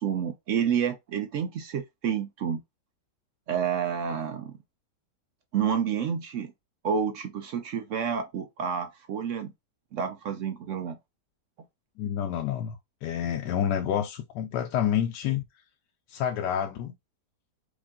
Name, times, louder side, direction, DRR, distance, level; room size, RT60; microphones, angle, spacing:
voice 1, 0.0-2.6 3.5-4.6 5.5-6.5 6.8-9.5 9.9-11.0, right 7 dB, 75° right, 0.7 m, -29 dB
voice 2, 12.0-15.4 16.1-16.9, left 9 dB, 80° left, 1.1 m, -28 dB
5.1 x 2.5 x 3.5 m
omnidirectional pair, 1.8 m